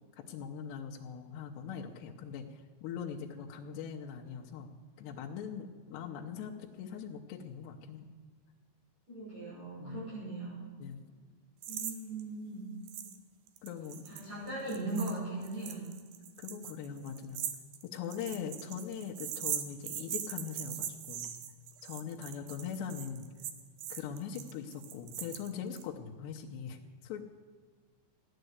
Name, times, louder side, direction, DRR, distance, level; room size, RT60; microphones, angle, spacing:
voice 1, 0.2-4.7 5.0-8.1 9.8-10.0 10.8-11.0 13.1-13.2 13.6-14.0 16.4-17.4 17.9-21.4 21.8-23.3 23.9-27.2, left 7 dB, 75° left, 0 dB, 2.9 m, -41 dB
voice 2, 9.1-10.7 11.7-12.6 14.0-15.8, right 2 dB, 40° right, -10 dB, 7.4 m, -38 dB
sound 1, 11.6-11.9 12.2-12.3 12.9-13.2 13.5-25.8, right 10 dB, 70° right, 2.3 m, -41 dB
16.0 x 10.0 x 8.0 m, 1.6 s
omnidirectional pair, 5.2 m